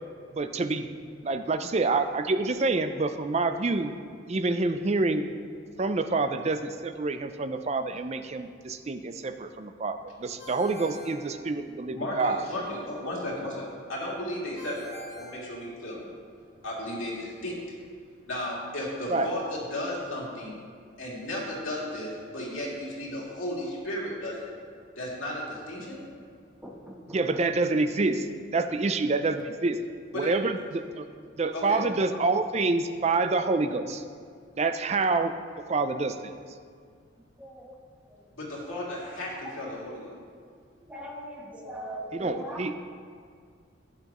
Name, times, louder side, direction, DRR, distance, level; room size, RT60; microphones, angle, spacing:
voice 1, 0.3-0.9 1.2-3.9 4.3-5.3 5.8-12.4 19.1-19.3 27.1-28.3 28.5-29.8 30.1-31.1 31.4-34.0 34.6-35.3 35.7-36.3 42.1-42.8, right 3 dB, 35° right, 9 dB, 0.4 m, -27 dB
Ringtone, 10.4-12.1 14.6-16.2, right 1 dB, 30° left, 2.2 m, -46 dB
voice 2, 11.9-13.6 13.9-16.0 16.6-17.5 18.3-20.6 21.0-24.5 25.0-26.0 30.1-30.3 31.5-31.8 38.4-40.1, left 1 dB, 90° left, -5 dB, 2.7 m, -34 dB
voice 3, 26.6-27.0 37.4-37.8 40.9-42.6, equal, 5° right, -2 dB, 1.1 m, -39 dB
11.5 x 9.1 x 3.0 m, 2.1 s
head